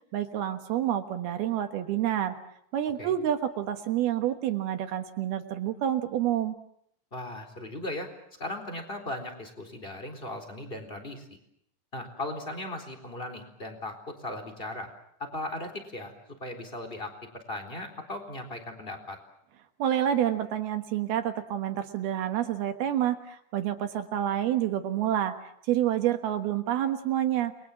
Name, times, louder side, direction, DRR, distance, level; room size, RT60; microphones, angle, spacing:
voice 1, 0.1-2.4 2.7-6.6 19.8-25.3 25.7-27.7, right 11 dB, 70° right, 7 dB, 3.2 m, -28 dB
voice 2, 7.1-8.1 8.4-11.4 11.9-14.9 15.2-16.1 16.4-19.2, left 1 dB, 15° left, 5 dB, 3.8 m, -37 dB
29.5 x 22.0 x 7.3 m, 0.72 s
omnidirectional pair, 4.8 m